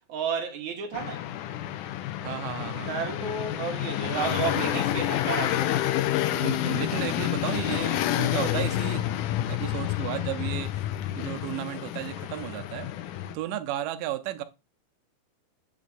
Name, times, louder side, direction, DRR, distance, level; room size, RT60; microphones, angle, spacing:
voice 1, 0.1-1.2 2.8-5.8, right 6 dB, 65° right, 2.3 m, -32 dB
sound 1, 0.9-13.3, left 13 dB, 80° left, 2.0 m, -29 dB
voice 2, 2.2-2.9 4.0-5.0 6.3-9.1 9.5-10.9 11.1-12.9 13.3-14.4, right 13 dB, 85° right, 2.3 m, -34 dB
8.3 x 3.3 x 4.0 m
omnidirectional pair, 3.8 m